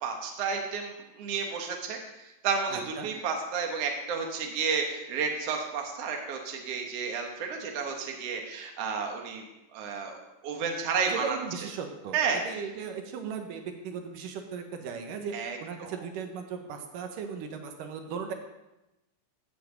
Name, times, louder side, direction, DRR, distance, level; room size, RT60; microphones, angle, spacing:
voice 1, 0.0-9.4 9.7-11.4 12.1-12.4 15.3-16.0, right 5 dB, 55° right, 2 dB, 2.2 m, -32 dB
voice 2, 2.7-3.1 11.1-18.3, right 6 dB, 85° right, 5 dB, 2.7 m, -37 dB
14.0 x 5.1 x 7.8 m, 0.96 s
omnidirectional pair, 3.7 m